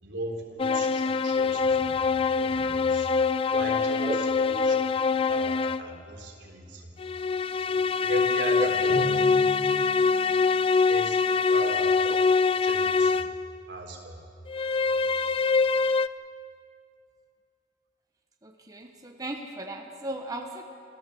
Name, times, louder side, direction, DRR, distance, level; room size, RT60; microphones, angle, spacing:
voice 1, 0.0-3.1 3.5-4.8 5.3-7.1 7.6-9.1 9.9-10.2 10.8-11.2 11.5-11.9 12.6-13.2 13.7-14.2 15.0-15.5, right 1 dB, 75° right, 1 dB, 3.5 m, -39 dB
sound 1, 0.6-6.0 7.0-13.5 14.5-16.1, left 4 dB, 30° left, 0.4 m, -24 dB
Drum, 8.9-11.1, right 1 dB, 60° left, 4.6 m, -38 dB
voice 2, 18.4-20.6, right 1 dB, 20° right, 2 dB, 1.2 m, -34 dB
28.5 x 14.5 x 7.8 m, 2.5 s
head